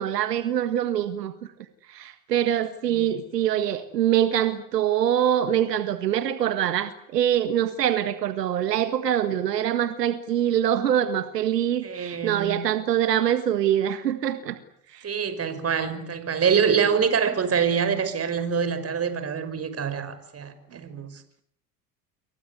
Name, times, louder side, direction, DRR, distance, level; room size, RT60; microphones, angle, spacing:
voice 1, 0.0-1.3 1.9-14.6 14.9-15.0, right 10 dB, 85° right, 1.8 m, -24 dB
voice 2, 2.9-3.2 11.8-12.6 15.0-21.2, right 6 dB, 30° right, 5.7 m, -25 dB
28.5 x 23.5 x 8.2 m
hypercardioid pair, 80°, 48 cm